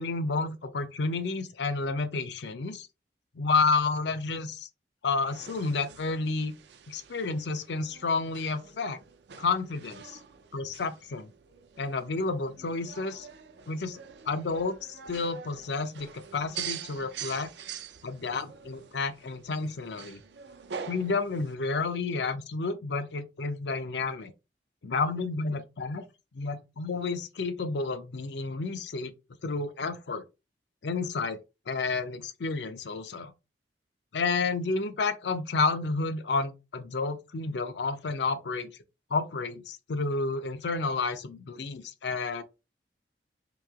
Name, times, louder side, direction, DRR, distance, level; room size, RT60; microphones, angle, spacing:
voice 1, 0.0-2.9 3.3-4.7 5.0-6.6 6.9-9.0 9.4-10.2 10.5-11.3 11.8-13.3 13.7-17.5 18.0-20.2 20.9-24.3 24.8-26.0 26.3-29.1 29.4-30.2 30.8-31.4 31.7-33.3 34.1-38.7 39.1-42.4, left 4 dB, 80° left, 0.5 m, -30 dB
sound 1, 5.1-21.5, right 7 dB, 80° right, 0.5 m, -45 dB
3.0 x 2.8 x 3.5 m
head